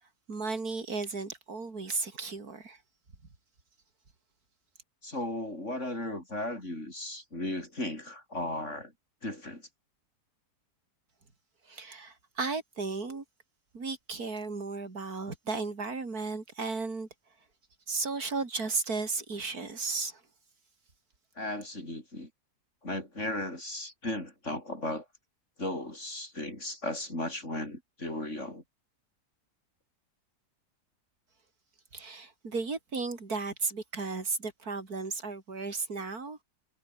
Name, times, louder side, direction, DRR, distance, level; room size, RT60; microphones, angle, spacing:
voice 1, 0.3-2.8 11.7-13.2 13.7-17.1 17.9-20.2 31.9-36.4, right 4 dB, 70° right, 4.1 m, -34 dB
voice 2, 5.0-8.9 9.2-9.6 21.4-22.3 22.8-25.0 25.6-28.6, left 1 dB, 50° left, 7.8 m, -36 dB
omnidirectional pair, 1.7 m